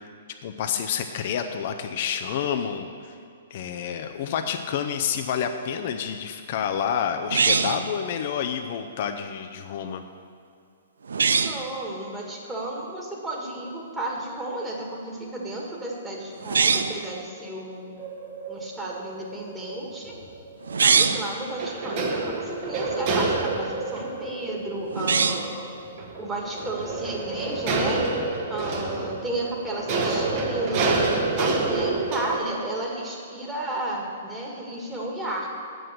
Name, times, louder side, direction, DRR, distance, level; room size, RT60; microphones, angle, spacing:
voice 1, 0.4-3.2 3.5-10.0, left 8 dB, 50° left, 6 dB, 0.5 m, -29 dB
sound 1, 7.3-7.9 11.1-11.6 16.4-17.0 20.6-21.3 24.9-25.6, right 5 dB, 70° right, 0.4 m, -22 dB
voice 2, 11.4-14.9 15.3-17.9 18.5-20.1 20.8-25.6 26.2-28.0 28.5-31.0 31.4-35.5, right 1 dB, 10° right, -2 dB, 1.8 m, -33 dB
sound 2, 18.0-20.9 21.4-32.4, right 3 dB, 40° right, 1.4 m, -28 dB
7.8 x 7.6 x 6.6 m, 2.5 s
figure-of-eight pair, 120°, 0 cm